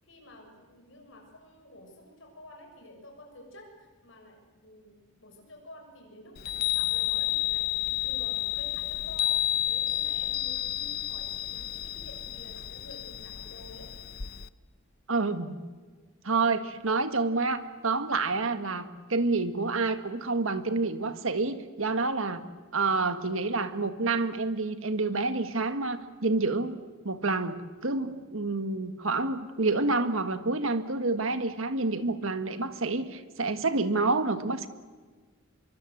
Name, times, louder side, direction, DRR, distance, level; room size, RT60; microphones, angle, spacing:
voice 1, 0.0-13.9, left 1 dB, 60° left, 2 dB, 6.9 m, -51 dB
Chime, 6.4-14.5, left 12 dB, 45° left, 0.7 m, -31 dB
voice 2, 15.1-15.6 16.2-22.4 22.7-26.8 27.0-27.5 27.8-34.7, right 3 dB, 70° right, 10 dB, 1.7 m, -28 dB
24.5 x 23.5 x 8.0 m, 1.4 s
head